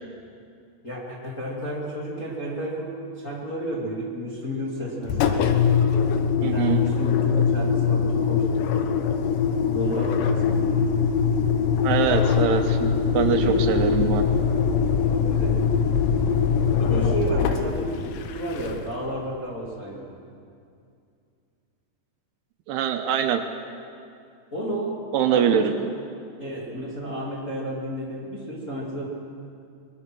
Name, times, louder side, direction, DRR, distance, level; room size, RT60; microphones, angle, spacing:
voice 1, 0.8-5.5 6.4-8.7 9.7-10.9 13.1-14.5 15.1-15.8 16.8-20.1 24.5-25.0 25.3-25.7 26.4-29.1, equal, 20° left, -5 dB, 2.4 m, -32 dB
Engine, 5.1-19.0, left 6 dB, 80° left, 3.3 m, -22 dB
voice 2, 6.4-6.8 11.8-14.2 22.7-23.4 25.1-25.7, right 8 dB, 80° right, 6 dB, 2.8 m, -23 dB
22.5 x 21.5 x 6.2 m, 2.4 s
omnidirectional pair, 5.0 m